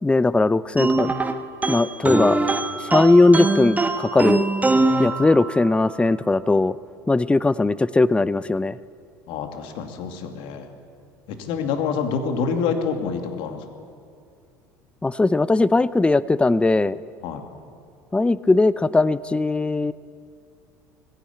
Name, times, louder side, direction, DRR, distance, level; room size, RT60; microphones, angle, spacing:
voice 1, 0.0-1.1 1.7-2.4 2.8-4.4 5.0-6.7 7.1-8.8 15.0-17.0 18.1-19.9, left 2 dB, 10° left, 18 dB, 0.6 m, -19 dB
sound 1, 0.8-5.8, right 3 dB, 15° right, 1.5 m, -23 dB
voice 2, 9.3-10.7 11.4-13.6 17.2-17.4, left 6 dB, 60° left, 5 dB, 2.6 m, -27 dB
19.5 x 16.5 x 8.6 m, 2.3 s
hypercardioid pair, 70°, 10 cm